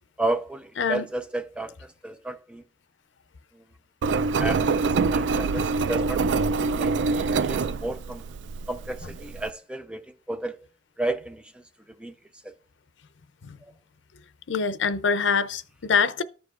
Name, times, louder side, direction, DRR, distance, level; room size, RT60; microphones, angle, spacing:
voice 1, 0.2-1.7 2.0-2.6 4.1-4.9 5.1-8.2 8.7-10.6 11.0-11.4 12.0-12.1 12.4-12.5, right 2 dB, 5° right, 0.4 m, -32 dB
Engine, 4.0-9.5, right 4 dB, 75° right, 0.3 m, -25 dB
voice 2, 14.5-16.2, left 5 dB, 80° left, 0.6 m, -24 dB
14.0 x 4.8 x 2.4 m
head